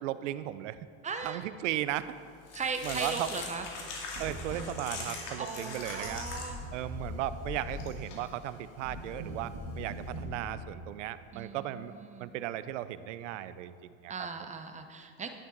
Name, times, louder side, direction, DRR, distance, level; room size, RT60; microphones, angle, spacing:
voice 1, 0.0-0.8 1.2-2.1 2.8-3.3 4.2-6.3 6.7-11.9 12.2-14.1, right 13 dB, 90° right, 14 dB, 0.6 m, -36 dB
voice 2, 1.0-1.4 2.5-3.7 5.4-6.6 11.3-12.3 14.1-15.3, right 5 dB, 20° right, 6 dB, 0.9 m, -38 dB
sound 1, 2.0-10.2, left 4 dB, 75° left, 2.4 m, -43 dB
sound 2, 3.1-3.3 4.1-4.7 6.0-7.9 8.8-10.5, equal, 60° right, 2.4 m, -41 dB
11.5 x 9.8 x 3.9 m, 2.3 s
supercardioid pair, 110°, 36 cm